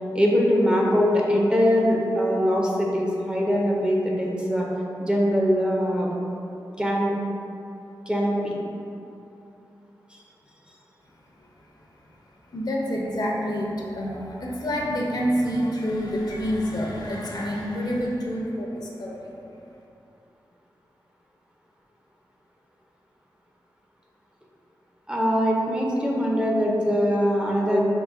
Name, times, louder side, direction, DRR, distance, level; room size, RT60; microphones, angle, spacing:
voice 1, 0.1-4.7 5.0-6.1 6.8-7.2 8.1-8.6 25.1-27.8, equal, 10° right, -3 dB, 0.6 m, -22 dB
voice 2, 12.5-19.4, equal, 55° left, -2 dB, 0.6 m, -28 dB
3.8 x 2.7 x 3.7 m, 2.8 s
wide cardioid pair, 85°, 8 cm